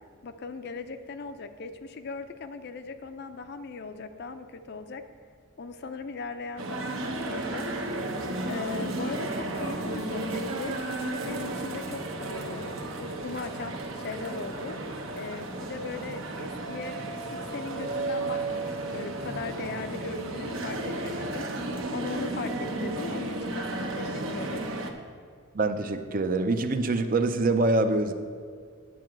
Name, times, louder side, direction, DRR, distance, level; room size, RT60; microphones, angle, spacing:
voice 1, 0.2-5.0 5.6-7.7 8.5-10.7 11.2-14.8 15.2-17.0 17.5-24.7, left 4 dB, 50° left, 9 dB, 0.5 m, -39 dB
sound 1, 6.6-24.9, right 2 dB, 65° right, 0.9 m, -33 dB
voice 2, 25.5-28.1, right 2 dB, 40° right, 8 dB, 0.5 m, -25 dB
9.5 x 4.8 x 7.7 m, 2.1 s
head